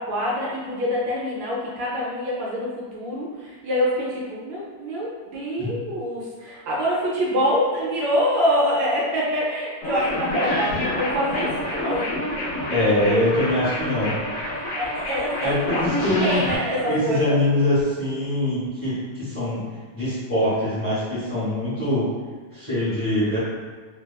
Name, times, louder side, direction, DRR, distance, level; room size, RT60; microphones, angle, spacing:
voice 1, 0.0-11.5 11.8-12.1 14.5-15.5 15.8-15.9 16.2-17.4, equal, 75° right, -5 dB, 1.2 m, -25 dB
sound 1, 9.8-16.6, left 1 dB, 70° left, 0.8 m, -27 dB
voice 2, 12.7-14.1 15.4-16.4 16.9-19.6 19.9-22.1 22.5-23.4, left 1 dB, 30° left, -12 dB, 0.9 m, -23 dB
3.3 x 2.2 x 2.2 m, 1.5 s
omnidirectional pair, 2.2 m